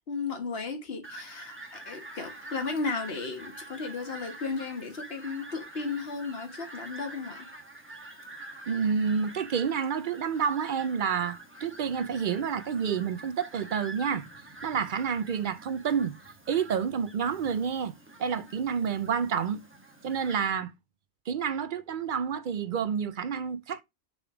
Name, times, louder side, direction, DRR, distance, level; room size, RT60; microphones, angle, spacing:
voice 1, 0.1-7.5, left 4 dB, 65° left, 1.5 m, -35 dB
Fowl, 1.0-20.5, right 2 dB, 10° right, 1.1 m, -46 dB
voice 2, 8.7-14.3 14.6-16.1 16.5-17.9 18.2-19.6 20.0-20.7 21.3-23.8, right 7 dB, 60° right, 0.6 m, -29 dB
6.1 x 3.6 x 4.7 m
omnidirectional pair, 1.1 m